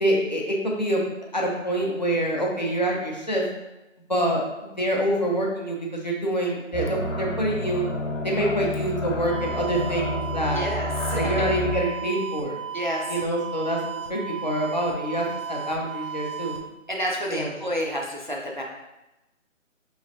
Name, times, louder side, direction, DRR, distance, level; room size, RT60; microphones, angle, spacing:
voice 1, 0.0-1.0 1.3-3.4 4.1-7.9 8.2-10.7 11.1-12.6 13.1-13.8 14.1-16.5 17.3-17.5, right 1 dB, 35° left, -2 dB, 0.6 m, -26 dB
sound 1, 6.7-11.7, left 1 dB, 75° left, 1.0 m, -29 dB
sound 2, 9.2-16.7, right 8 dB, 85° right, 0.8 m, -35 dB
voice 2, 10.5-11.2 12.7-13.2 16.9-18.6, equal, 40° right, -2 dB, 0.4 m, -29 dB
5.0 x 3.0 x 2.5 m, 0.98 s
figure-of-eight pair, 170°, 39 cm